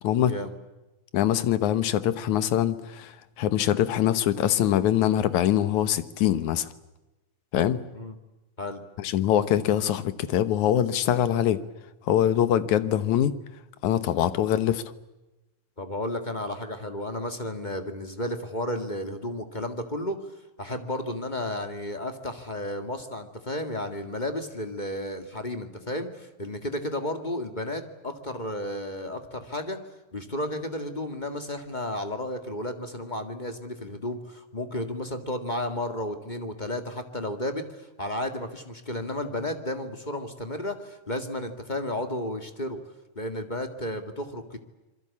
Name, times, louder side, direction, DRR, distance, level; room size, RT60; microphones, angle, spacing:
voice 1, 0.0-0.4 1.1-6.7 7.5-7.8 9.0-11.6 12.0-13.4 13.8-14.8, left 11 dB, 75° left, 13 dB, 2.5 m, -23 dB
voice 2, 15.8-20.2 20.6-29.8 30.1-42.8 43.1-44.6, left 1 dB, 20° left, 7 dB, 1.5 m, -33 dB
26.5 x 23.0 x 8.5 m, 1.0 s
omnidirectional pair, 3.5 m